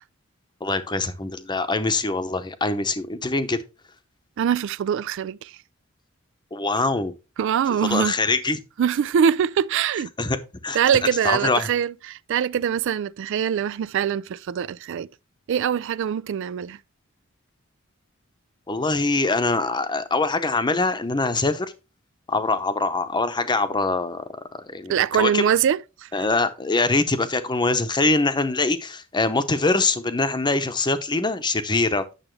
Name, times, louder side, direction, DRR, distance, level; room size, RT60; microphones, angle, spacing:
voice 1, 0.6-3.6 6.5-7.1 7.7-8.6 10.2-10.4 10.6-10.8 11.2-11.7 18.7-21.7 22.3-24.2 24.6-25.4 26.1-32.0, left 3 dB, 20° left, 0.8 m, -23 dB
voice 2, 4.4-5.5 7.4-8.1 8.8-10.1 10.7-15.1 15.5-16.8 24.9-26.3, right 8 dB, 65° right, 0.3 m, -23 dB
9.1 x 6.9 x 3.2 m
head